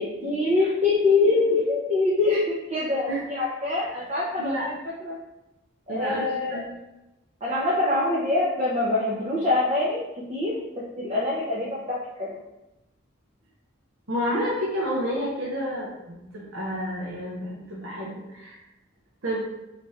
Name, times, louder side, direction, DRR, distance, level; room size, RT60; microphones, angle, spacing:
voice 1, 0.0-4.7 5.0-5.2 5.9-6.6 7.4-12.4, left 2 dB, 30° right, -7 dB, 0.6 m, -24 dB
voice 2, 5.9-6.7 14.1-18.6 19.2-19.4, equal, 65° right, -5 dB, 0.7 m, -30 dB
3.3 x 2.5 x 4.0 m, 0.97 s
head